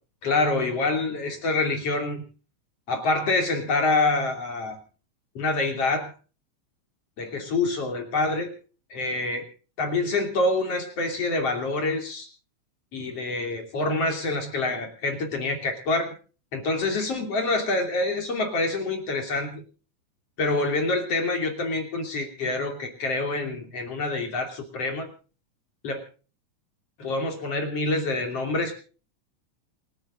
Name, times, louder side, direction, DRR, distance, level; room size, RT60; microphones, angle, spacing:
voice 1, 0.2-2.2 2.9-4.8 5.4-6.1 7.2-8.5 8.9-9.5 9.8-12.3 12.9-16.1 16.5-19.6 20.4-25.1 25.8-26.0 27.0-28.7, left 2 dB, 55° left, 3 dB, 3.9 m, -26 dB
28.0 x 9.6 x 3.8 m, 0.37 s
omnidirectional pair, 3.4 m